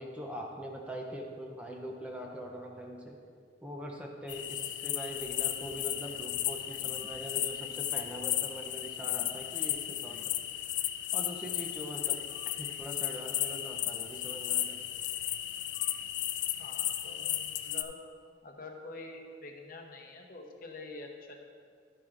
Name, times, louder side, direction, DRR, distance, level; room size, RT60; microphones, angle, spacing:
voice 1, 0.0-3.2 3.6-10.3 11.1-12.2 12.6-14.8, equal, 5° right, 0 dB, 0.6 m, -42 dB
sound 1, 4.3-17.8, left 13 dB, 65° left, 0.4 m, -34 dB
voice 2, 16.6-18.0 18.4-21.3, left 2 dB, 45° left, 1 dB, 0.8 m, -46 dB
11.0 x 7.5 x 2.5 m, 2.1 s
head